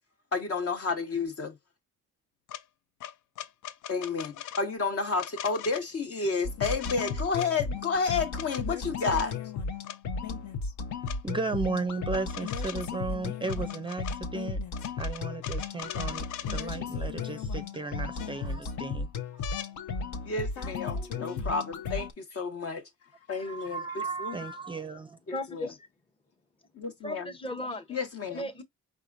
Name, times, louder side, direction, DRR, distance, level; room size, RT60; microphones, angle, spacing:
voice 1, 0.3-1.5 3.9-9.3 20.2-22.8 23.3-24.4 25.3-25.7 26.8-27.3 27.9-28.4, left 4 dB, 50° left, 1.3 m, -31 dB
sound 1, 2.5-2.6 3.0-4.6 5.2-5.8 6.6-7.5 8.1-8.6 9.1-9.3 9.8-10.0 11.1-11.2 12.1-13.0 13.4-14.2 14.7-16.7 17.7-17.8 18.2-18.7 19.4-19.7 21.3-21.4, left 10 dB, 85° left, 0.5 m, -41 dB
sound 2, 6.4-22.1, left 4 dB, 70° left, 0.9 m, -35 dB
voice 2, 11.2-14.6 15.0-19.9 20.9-21.5 23.4-25.2, right 3 dB, 15° right, 0.5 m, -35 dB
voice 3, 25.3-25.9 27.0-28.0 28.3-28.6, left 1 dB, 20° left, 0.9 m, -36 dB
4.8 x 3.6 x 2.6 m
cardioid pair, 90°, 30 cm